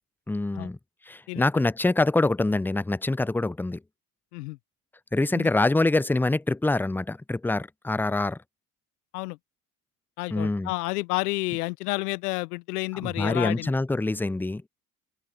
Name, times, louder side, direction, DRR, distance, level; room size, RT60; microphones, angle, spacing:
voice 1, 0.3-0.8 1.1-3.8 5.1-8.4 10.3-10.7 12.9-14.7, left 2 dB, 5° left, 0.5 m, -25 dB
voice 2, 10.2-13.7, left 23 dB, 75° left, 1.1 m, -30 dB
hypercardioid pair, 65°, 46 cm